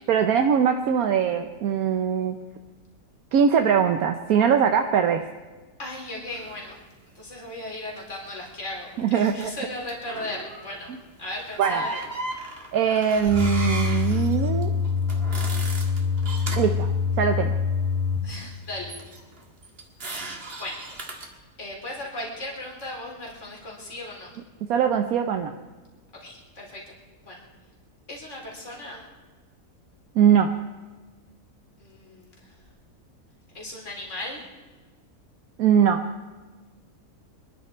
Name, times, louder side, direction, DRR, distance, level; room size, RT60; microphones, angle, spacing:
voice 1, 0.1-2.4 3.3-5.2 9.0-9.5 10.9-11.0 11.6-11.9 12.7-14.7 16.6-16.9 17.2-17.6 24.7-25.5 30.1-30.5 35.6-36.0, right 7 dB, 75° right, 6 dB, 1.2 m, -21 dB
voice 2, 5.8-6.8 7.2-10.9 11.2-12.0 18.2-18.9 20.1-20.8 21.6-24.3 26.2-26.9 27.2-27.4 28.1-29.0 31.8-32.3 33.5-34.4, left 1 dB, 50° left, -2 dB, 4.0 m, -36 dB
sound 1, 6.3-6.6 9.4-9.5 9.9-10.8 11.4-16.8 18.9-21.3, right 2 dB, 40° right, 1.9 m, -36 dB
sound 2, 13.3-18.2, left 5 dB, 80° left, 4.6 m, -25 dB
25.5 x 11.5 x 4.4 m, 1.3 s
omnidirectional pair, 1.6 m